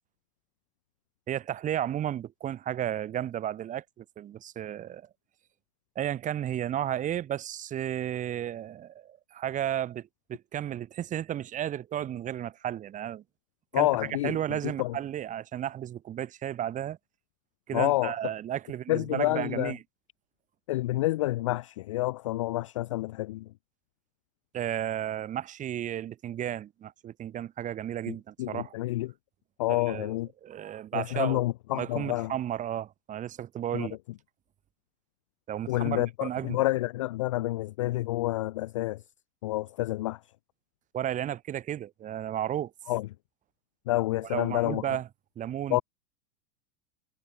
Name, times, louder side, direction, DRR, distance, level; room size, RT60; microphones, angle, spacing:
voice 1, 1.3-5.1 5.9-13.2 13.7-13.9 14.2-17.0 17.7-19.8 24.5-28.7 29.7-30.1 30.4-31.4 31.7-34.0 35.5-36.6 40.9-42.7 44.3-45.1 45.3-45.8, right 11 dB, 15° right, 1.8 m, -33 dB
voice 2, 13.7-15.0 17.7-18.1 18.9-19.7 20.7-23.5 28.1-29.1 29.6-30.3 30.9-32.3 33.7-33.9 35.7-39.0 39.4-40.2 42.9-43.1 43.9-45.0 45.7-45.8, left 17 dB, 25° left, 0.4 m, -29 dB
supercardioid pair, 175°, 43 cm